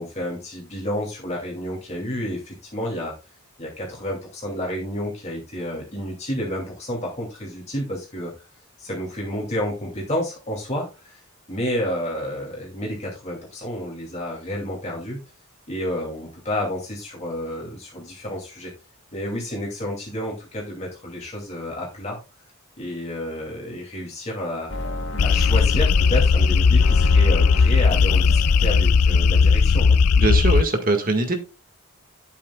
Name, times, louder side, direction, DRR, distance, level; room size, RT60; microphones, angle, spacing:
voice 1, 0.0-3.2 3.6-8.3 8.8-11.2 11.5-15.2 15.7-18.7 19.1-22.2 22.8-24.7 25.2-30.0, equal, 30° left, -2 dB, 2.7 m, -30 dB
sound 1, 24.7-29.6, left 2 dB, 55° left, 1.7 m, -34 dB
sound 2, 25.2-30.6, left 5 dB, 90° left, 0.5 m, -17 dB
voice 2, 30.2-31.4, right 2 dB, 40° right, 5 dB, 1.8 m, -21 dB
12.0 x 8.7 x 2.3 m, 0.28 s
head